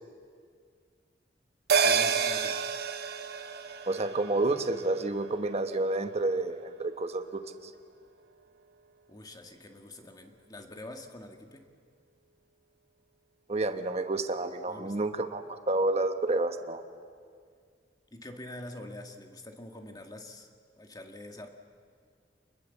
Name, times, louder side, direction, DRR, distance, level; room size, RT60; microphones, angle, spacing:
voice 1, 1.7-2.6 9.1-11.7 14.7-15.1 18.1-20.5 20.8-21.5, left 1 dB, 25° left, 4 dB, 1.8 m, -45 dB
sound 1, 1.7-6.4 6.7-6.8, right 6 dB, 65° right, 1.1 m, -30 dB
voice 2, 3.9-7.7 13.5-16.8, right 2 dB, 40° right, 7 dB, 1.1 m, -30 dB
28.5 x 21.5 x 7.1 m, 2.1 s
head